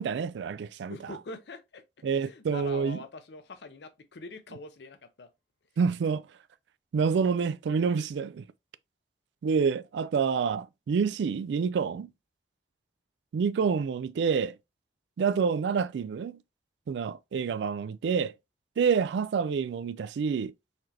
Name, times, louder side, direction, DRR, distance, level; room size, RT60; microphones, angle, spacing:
voice 1, 0.0-1.0 2.0-3.0 5.8-6.2 6.9-8.5 9.4-12.1 13.3-14.6 15.2-16.3 16.9-18.3 18.8-20.5, right 6 dB, 80° right, 0.3 m, -27 dB
voice 2, 0.9-1.8 2.1-5.3, left 3 dB, 75° left, 0.6 m, -44 dB
4.1 x 3.2 x 2.8 m
head